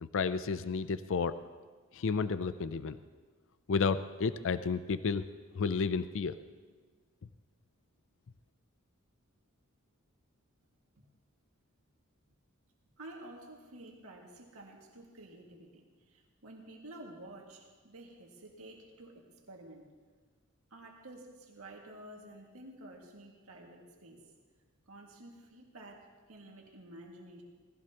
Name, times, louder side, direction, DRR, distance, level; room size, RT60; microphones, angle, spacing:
voice 1, 0.0-1.4 1.9-3.0 3.7-5.3 5.6-6.3, left 5 dB, 65° left, 13 dB, 0.5 m, -31 dB
voice 2, 13.0-19.9 20.7-24.2 24.9-27.4, right 1 dB, 85° right, 0 dB, 2.0 m, -51 dB
19.0 x 15.5 x 2.9 m, 1.4 s
head